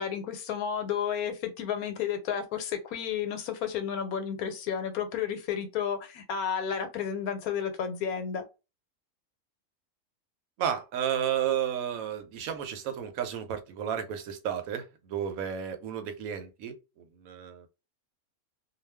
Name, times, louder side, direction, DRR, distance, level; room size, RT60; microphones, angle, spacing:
voice 1, 0.0-8.4, left 8 dB, 80° left, 1.1 m, -32 dB
voice 2, 10.6-17.7, right 9 dB, 75° right, 1.0 m, -32 dB
2.4 x 2.3 x 3.2 m
omnidirectional pair, 1.5 m